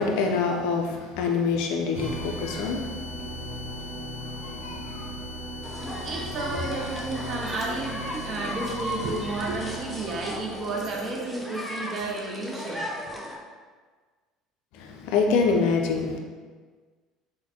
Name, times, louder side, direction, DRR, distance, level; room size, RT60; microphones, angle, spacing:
voice 1, 0.0-2.9 3.2-5.3 5.8-6.4 14.7-16.2, left 4 dB, 65° left, 2 dB, 0.3 m, -27 dB
sound 1, 1.9-11.3, equal, 85° right, 0.8 m, -37 dB
sound 2, 5.6-13.4, equal, ahead, 0.6 m, -36 dB
voice 2, 6.0-12.9, right 2 dB, 45° right, -1 dB, 0.5 m, -32 dB
3.8 x 2.1 x 2.9 m, 1.5 s
hypercardioid pair, 65°, 0 cm